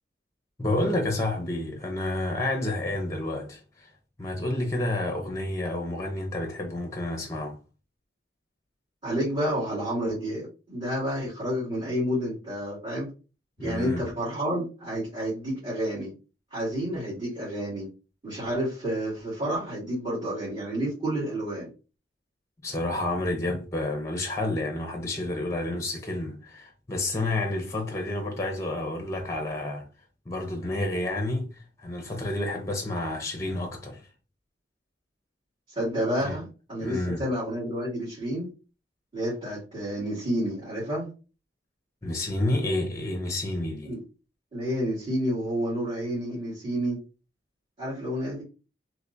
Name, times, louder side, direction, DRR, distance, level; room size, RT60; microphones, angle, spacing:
voice 1, 0.6-3.9 4.2-7.6 13.6-14.1 22.6-29.8 30.3-34.0 36.2-36.4 36.8-37.3 42.0-43.9, left 1 dB, 15° left, 0.7 m, -30 dB
voice 2, 9.0-13.1 13.6-16.1 16.5-17.9 18.2-21.7 35.7-38.5 39.1-41.1 43.8-44.0 44.5-47.0 47.8-48.4, equal, 30° right, 2.0 m, -30 dB
3.4 x 3.1 x 2.6 m
head